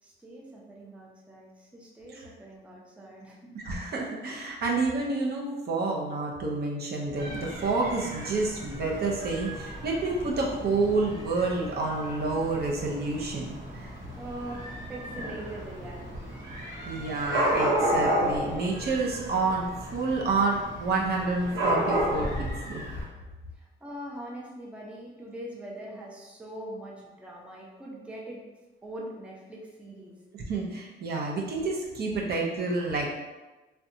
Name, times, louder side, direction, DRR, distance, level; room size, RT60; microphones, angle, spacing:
voice 1, 0.0-3.6 14.2-16.4 23.5-28.4 28.8-30.2, right 1 dB, 5° right, -3 dB, 0.5 m, -42 dB
voice 2, 3.6-13.9 16.9-22.8 30.5-33.1, right 3 dB, 55° right, -2 dB, 0.6 m, -29 dB
Dog / Cat, 7.2-23.0, equal, 75° right, 0.9 m, -32 dB
2.6 x 2.2 x 2.5 m, 1.2 s
cardioid pair, 90°, 20 cm